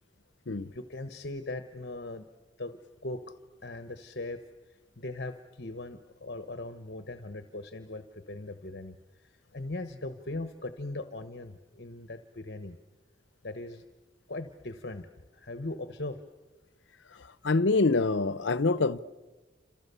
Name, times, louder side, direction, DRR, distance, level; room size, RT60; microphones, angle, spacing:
voice 1, 0.7-2.3 2.6-3.2 3.6-4.4 4.7-12.8 13.4-13.8 14.3-16.2, left 2 dB, 60° left, 1.1 m, -39 dB
voice 2, 17.4-19.0, left 3 dB, 85° left, 0.8 m, -25 dB
30.0 x 27.0 x 7.0 m
head